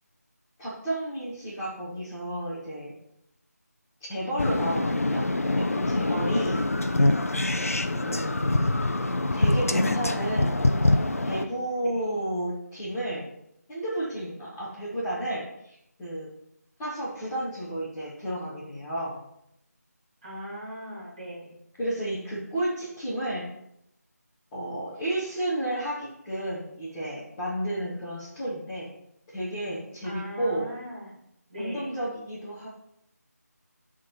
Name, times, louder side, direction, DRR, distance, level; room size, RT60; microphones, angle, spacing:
voice 1, 0.6-3.0 4.1-6.6 7.9-8.5 9.3-10.6 11.2-13.3 13.7-16.3 16.8-19.2 21.8-23.5 24.5-28.9 29.3-30.7 31.6-32.7, right 1 dB, 10° left, -13 dB, 1.0 m, -32 dB
sound 1, 4.4-11.4, left 2 dB, 55° left, 0.6 m, -25 dB
voice 2, 6.3-6.6 7.5-7.8 11.8-12.1 20.2-21.5 30.0-31.2 31.5-32.0, equal, 30° right, -5 dB, 2.9 m, -39 dB
11.0 x 3.7 x 4.5 m, 0.78 s
figure-of-eight pair, 165°, 9 cm